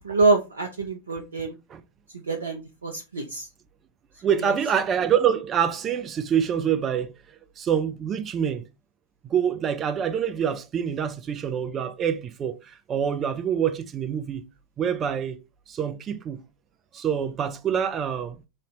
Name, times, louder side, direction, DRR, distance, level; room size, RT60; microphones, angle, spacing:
voice 1, 0.0-1.5 2.3-3.5, right 3 dB, 75° right, 0.5 m, -25 dB
voice 2, 4.2-7.1 7.6-8.6 9.2-14.4 14.8-15.4 15.7-16.4 16.9-18.4, right 8 dB, 25° right, 0.5 m, -26 dB
3.2 x 2.7 x 4.1 m
figure-of-eight pair, 90°, 0 cm